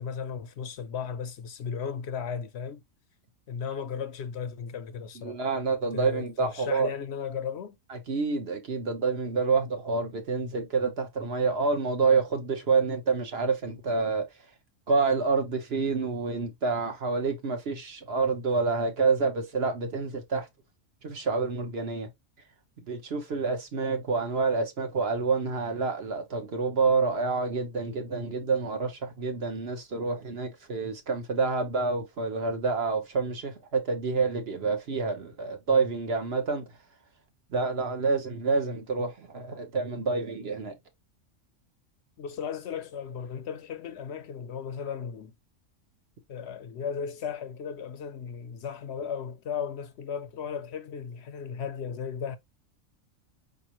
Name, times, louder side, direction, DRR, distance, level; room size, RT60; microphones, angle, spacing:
voice 1, 0.0-2.8 3.5-5.4 5.9-7.8 42.2-45.3 46.3-52.4, left 7 dB, 65° left, 0.8 m, -35 dB
voice 2, 5.2-6.9 7.9-14.3 14.9-20.5 21.0-22.1 22.9-36.6 37.5-40.7, right 4 dB, 55° right, 1.2 m, -28 dB
5.2 x 3.0 x 2.9 m
omnidirectional pair, 1.3 m